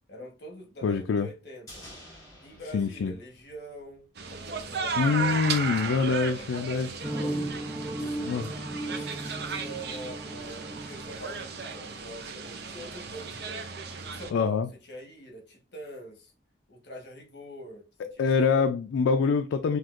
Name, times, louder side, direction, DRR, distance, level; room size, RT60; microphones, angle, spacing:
voice 1, 0.1-1.9 2.4-5.4 5.8-7.4 7.9-8.5 8.8-16.3 16.7-18.7, equal, 60° left, 1.1 m, -44 dB
voice 2, 0.8-1.3 2.7-3.1 5.0-6.9 8.2-8.5 14.3-14.7 18.0-19.8, left 5 dB, 90° left, 0.3 m, -25 dB
sound 1, 1.7-4.1 4.3-4.4, left 1 dB, 20° left, 2.1 m, -50 dB
sound 2, 4.2-14.3, right 5 dB, 55° right, 0.6 m, -35 dB
sound 3, 7.0-11.8, right 1 dB, 15° right, 0.6 m, -36 dB
5.9 x 2.8 x 2.4 m
head